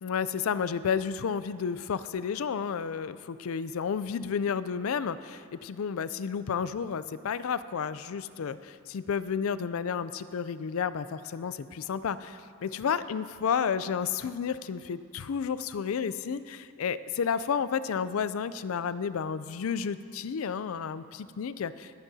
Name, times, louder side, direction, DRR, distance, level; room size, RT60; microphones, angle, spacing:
voice 1, 0.0-21.9, left 6 dB, 75° left, 15 dB, 0.4 m, -31 dB
22.0 x 9.7 x 2.8 m, 2.3 s
head